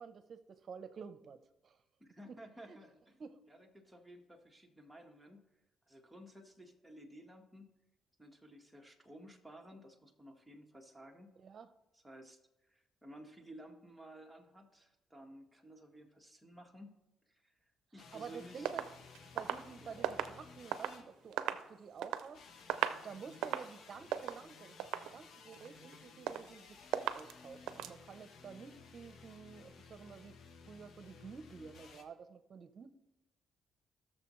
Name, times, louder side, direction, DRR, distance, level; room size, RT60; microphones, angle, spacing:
voice 1, 0.0-1.8 2.7-2.8 3.2-3.4 11.4-11.7 18.1-18.8 19.3-22.4 22.8-30.4 30.7-32.9, right 6 dB, 50° right, 11 dB, 0.8 m, -50 dB
voice 2, 2.0-3.2 3.5-5.5 5.9-7.8 8.2-11.3 11.9-12.4 12.7-18.7 19.8-20.0, right 1 dB, 5° right, 1 dB, 1.6 m, -55 dB
sound 1, 18.0-21.7 22.3-32.0, left 5 dB, 65° left, 1.2 m, -57 dB
sound 2, 18.7-21.0 21.3-22.3 22.6-23.1 23.3-23.8 24.1-24.4 24.8-25.2 25.5-26.0 26.3-26.6 26.9-27.3 27.7-28.0, right 11 dB, 90° right, 0.5 m, -38 dB
17.5 x 6.6 x 3.2 m, 0.91 s
cardioid pair, 90°, 0 cm